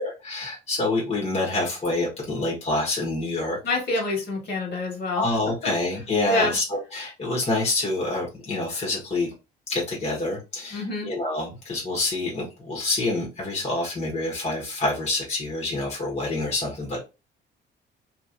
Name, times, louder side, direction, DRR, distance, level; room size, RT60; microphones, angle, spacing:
voice 1, 0.0-3.6 5.1-9.3 9.7-17.0, left 2 dB, 35° left, -2 dB, 1.2 m, -27 dB
voice 2, 3.6-5.2 6.3-6.5 10.7-11.1, left 2 dB, 60° left, 0 dB, 1.7 m, -26 dB
2.9 x 2.7 x 2.5 m, 0.28 s
cardioid pair, 90°, 20 cm